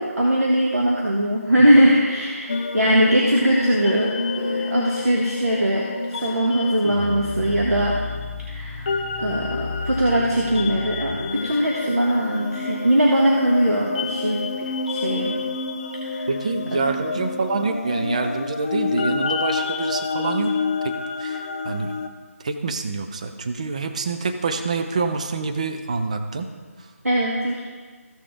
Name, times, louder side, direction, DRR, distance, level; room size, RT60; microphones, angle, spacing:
voice 1, 0.0-8.0 8.4-8.9 9.2-11.2 11.4-14.4 14.9-15.3 16.0-16.3 27.0-27.6, right 1 dB, 75° right, -3 dB, 1.5 m, -20 dB
sound 1, 2.5-22.1, left 4 dB, 30° left, 0.5 m, -28 dB
voice 2, 16.3-20.6 20.8-20.9 21.2-21.9 22.4-26.5, right 4 dB, 25° right, 6 dB, 0.5 m, -26 dB
14.5 x 6.6 x 3.7 m, 1.4 s
figure-of-eight pair, 160°, 8 cm